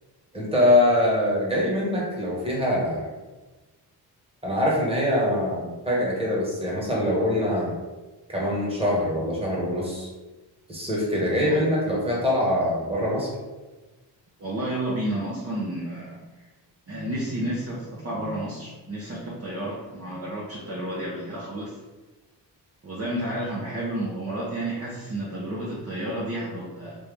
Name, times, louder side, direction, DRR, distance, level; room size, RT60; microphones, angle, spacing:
voice 1, 0.3-3.1 4.4-7.7 8.3-10.1 10.7-13.3, left 1 dB, 15° right, -4 dB, 1.4 m, -23 dB
voice 2, 14.4-16.5 16.9-21.8 22.8-27.0, right 1 dB, 35° right, -7 dB, 0.9 m, -31 dB
3.5 x 2.8 x 3.4 m, 1.2 s
cardioid pair, 85°, 42 cm